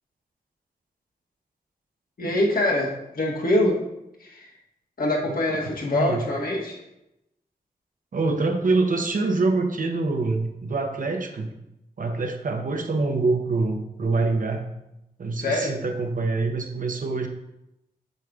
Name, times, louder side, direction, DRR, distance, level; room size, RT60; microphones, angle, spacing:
voice 1, 2.2-3.8 4.2-4.5 5.0-6.8 8.4-8.5 15.4-15.7, left 1 dB, 65° left, -2 dB, 1.5 m, -24 dB
voice 2, 8.1-11.5 12.0-14.7 15.2-17.3, right 3 dB, 60° right, 4 dB, 0.8 m, -25 dB
7.9 x 5.2 x 2.4 m, 0.87 s
wide cardioid pair, 80°, 16 cm